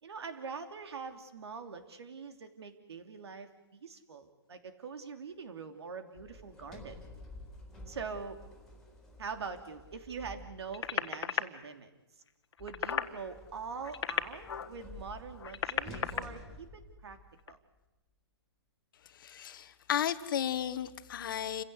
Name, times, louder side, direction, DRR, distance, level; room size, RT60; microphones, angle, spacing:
voice 1, 0.0-7.0 7.9-8.4 9.2-11.9 12.6-17.2 17.5-17.6, right 5 dB, 70° right, 8 dB, 3.1 m, -43 dB
Sliding door, 6.1-11.0 12.6-17.5, left 1 dB, ahead, 3.8 m, -51 dB
sound 1, 10.7-11.4 12.5-13.1 13.8-14.7 15.3-16.2 17.4-17.5, left 7 dB, 75° left, 1.5 m, -34 dB
voice 2, 19.1-21.6, left 10 dB, 50° left, 13 dB, 1.3 m, -34 dB
28.5 x 16.0 x 8.2 m, 1.1 s
hypercardioid pair, 155°, 14 cm